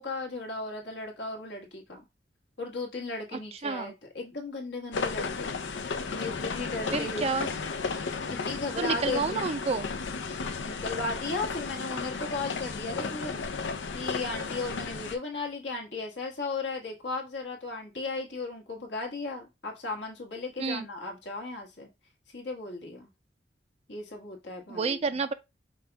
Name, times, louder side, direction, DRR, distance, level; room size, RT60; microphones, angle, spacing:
voice 1, 0.0-2.0 2.6-5.5 6.1-7.3 8.3-9.5 10.6-13.4 13.9-21.9 22.3-23.1 23.9-25.0, left 3 dB, 70° left, 1.5 m, -36 dB
voice 2, 3.3-3.9 6.9-7.5 8.8-9.9 20.6-20.9 24.7-25.3, right 4 dB, 35° right, 0.4 m, -30 dB
sound 1, 4.9-15.2, left 4 dB, 90° left, 0.6 m, -34 dB
5.4 x 2.3 x 4.0 m
head